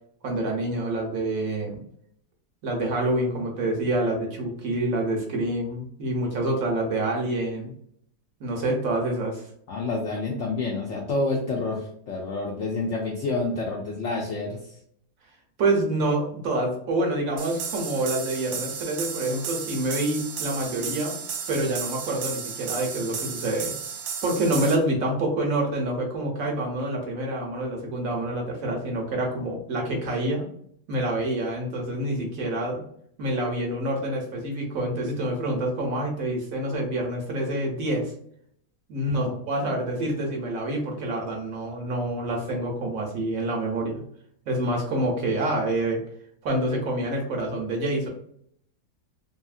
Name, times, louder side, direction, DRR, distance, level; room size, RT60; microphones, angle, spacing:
voice 1, 0.2-1.8 2.6-7.7 8.4-9.5 15.6-21.2 21.5-23.7 24.2-30.5 30.9-32.8 33.2-38.1 38.9-44.0 44.5-46.0 46.4-48.1, right 1 dB, 65° right, 0 dB, 1.0 m, -27 dB
voice 2, 9.7-14.6 39.2-39.3, left 3 dB, 75° left, -1 dB, 0.7 m, -28 dB
sound 1, 17.4-24.7, right 7 dB, 85° right, 1.2 m, -34 dB
2.7 x 2.6 x 2.4 m, 0.66 s
omnidirectional pair, 1.7 m